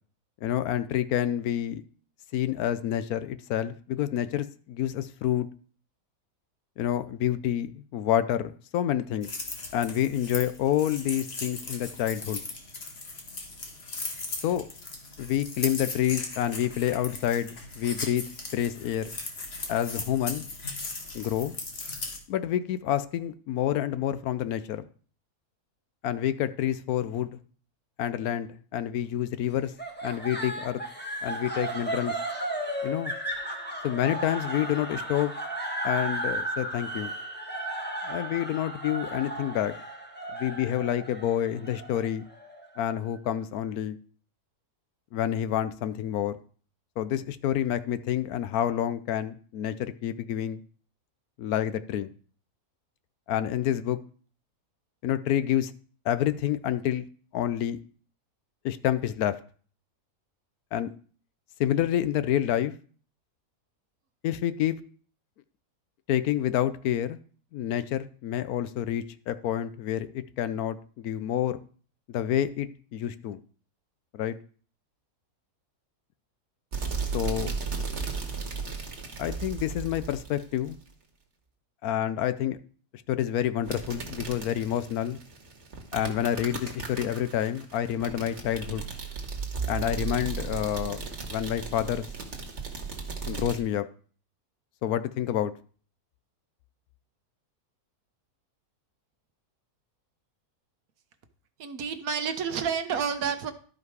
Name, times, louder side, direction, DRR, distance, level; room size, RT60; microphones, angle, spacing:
voice 1, 0.4-1.8 2.3-5.5 6.8-9.3 9.7-12.4 14.4-14.6 15.2-18.2 18.5-19.1 19.7-20.4 21.1-21.5 22.3-24.8 26.0-27.3 28.0-29.7 30.0-30.8 31.2-32.2 32.8-33.1 33.8-35.3 35.8-37.1 38.0-39.7 40.4-42.2 42.8-44.0 45.1-46.3 47.0-50.6 51.4-52.1 53.3-54.0 55.0-55.7 56.1-57.0 57.3-57.8 58.6-59.4 60.7-60.9 61.6-62.7 64.2-64.8 66.1-67.2 67.5-71.6 72.1-73.4 74.1-74.3 77.1-77.5 79.2-80.8 81.8-82.6 83.1-85.2 85.9-88.8 89.7-92.1 93.3-93.9 94.8-95.5, left 11 dB, 75° left, 13 dB, 1.1 m, -28 dB
sound 1, 9.2-22.2, left 3 dB, 45° left, 1.6 m, -38 dB
sound 2, 29.8-42.9, right 1 dB, 5° left, 1.2 m, -34 dB
sound 3, 76.7-80.9 83.6-93.6, right 5 dB, 50° right, 1.7 m, -35 dB
voice 2, 101.6-103.5, right 7 dB, 70° right, 9 dB, 1.3 m, -29 dB
12.0 x 5.1 x 4.7 m, 0.43 s
omnidirectional pair, 1.6 m